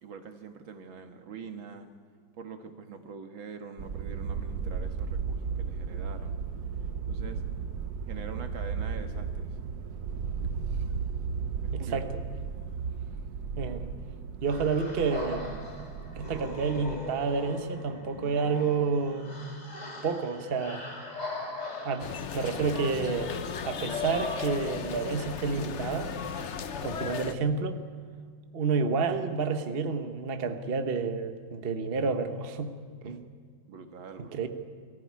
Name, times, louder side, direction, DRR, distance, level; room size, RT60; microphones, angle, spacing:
voice 1, 0.0-1.9 2.4-6.4 7.1-7.4 8.1-9.6 11.6-12.0 33.7-34.4, right 5 dB, 75° right, 7 dB, 2.3 m, -44 dB
sound 1, 3.8-17.0, right 6 dB, 60° right, 1.4 m, -35 dB
voice 2, 11.7-12.1 13.6-13.9 14.4-15.7 16.1-19.3 20.0-20.8 21.8-22.1 22.3-23.4 23.7-26.1 26.8-27.8 28.5-32.7 33.0-33.2 34.2-34.5, right 5 dB, 35° right, 7 dB, 1.1 m, -29 dB
sound 2, 14.5-25.5, left 3 dB, 20° left, 2.4 m, -40 dB
sound 3, 22.0-27.3, left 7 dB, 50° left, 0.9 m, -36 dB
23.0 x 15.0 x 9.6 m, 2.1 s
omnidirectional pair, 2.2 m